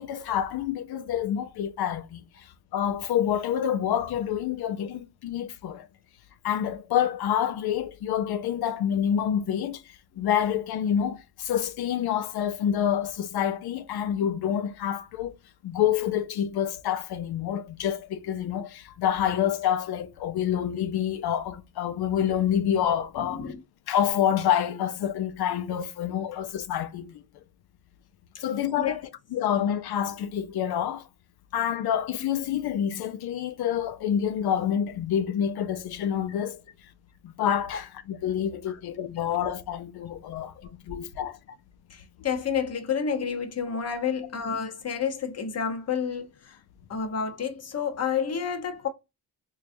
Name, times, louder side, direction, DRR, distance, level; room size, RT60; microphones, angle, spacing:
voice 1, 0.0-5.9 6.4-15.3 15.6-23.5 23.9-27.2 28.4-29.0 29.3-31.1 31.5-36.6 37.2-40.5 40.9-41.4, left 9 dB, 90° left, 0.5 m, -27 dB
voice 2, 23.2-23.6 26.3-26.4 28.3-28.4 28.8-28.9 36.3-36.4 38.7-38.8 40.3-40.7 41.9-46.6 46.9-48.9, left 6 dB, 40° left, 0.8 m, -30 dB
4.5 x 2.3 x 2.5 m
wide cardioid pair, 150°, 37 cm